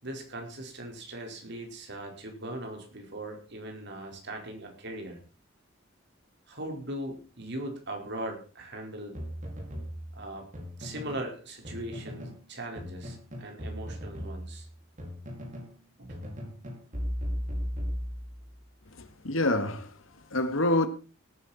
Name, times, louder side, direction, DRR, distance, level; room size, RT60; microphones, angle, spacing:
voice 1, 0.0-5.2 6.5-9.1 10.1-10.4 10.8-14.7 16.0-16.1, right 1 dB, 60° right, 4.8 m, -39 dB
sound 1, 9.1-11.3 11.6-12.4 12.8-15.8 16.1-18.5, equal, 40° right, 5.0 m, -37 dB
voice 2, 18.9-20.9, left 1 dB, 85° left, 2.0 m, -28 dB
18.0 x 10.5 x 4.4 m
head